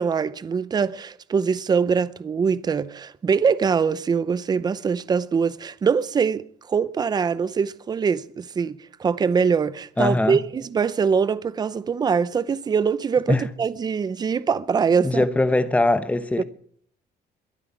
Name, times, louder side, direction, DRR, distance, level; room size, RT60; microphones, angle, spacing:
voice 1, 0.0-15.2 16.4-16.5, right 6 dB, 25° right, 0.6 m, -23 dB
voice 2, 10.0-10.4 13.3-13.4 15.0-16.4, left 2 dB, 10° left, 0.9 m, -21 dB
22.5 x 8.9 x 7.2 m
cardioid pair, 155°, 17 cm